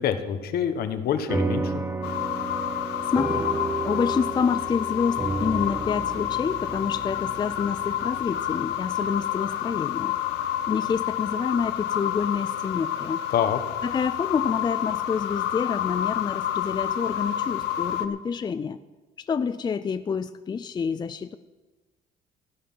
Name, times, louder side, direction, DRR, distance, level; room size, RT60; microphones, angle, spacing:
voice 1, 0.0-1.8 13.3-13.6, left 8 dB, 65° left, 9 dB, 1.3 m, -26 dB
sound 1, 1.3-10.0, right 3 dB, 15° right, 1.0 m, -32 dB
sound 2, 2.0-18.1, left 11 dB, 90° left, 0.9 m, -29 dB
voice 2, 3.1-3.5 3.8-10.1 10.7-13.2 13.8-18.8 19.2-21.4, left 6 dB, 25° left, 12 dB, 0.4 m, -28 dB
16.0 x 10.0 x 5.6 m, 1.2 s
cardioid pair, 110°, 17 cm